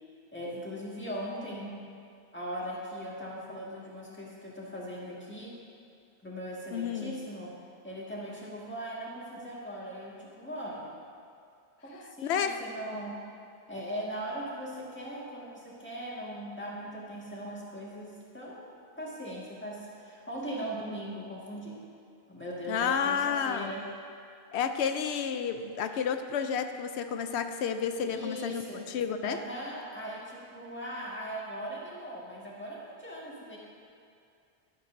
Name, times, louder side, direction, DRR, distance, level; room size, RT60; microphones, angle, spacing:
voice 1, 0.3-1.9 2.3-5.5 6.2-7.6 7.8-10.9 11.8-13.2 13.7-18.6 19.0-21.8 22.3-23.9 28.1-28.8 29.2-33.6, equal, 10° left, -6 dB, 1.7 m, -39 dB
voice 2, 6.7-7.2 12.2-12.6 22.7-23.7 24.5-29.4, left 7 dB, 80° left, 8 dB, 0.9 m, -31 dB
11.5 x 11.0 x 2.6 m, 2.5 s
omnidirectional pair, 1.1 m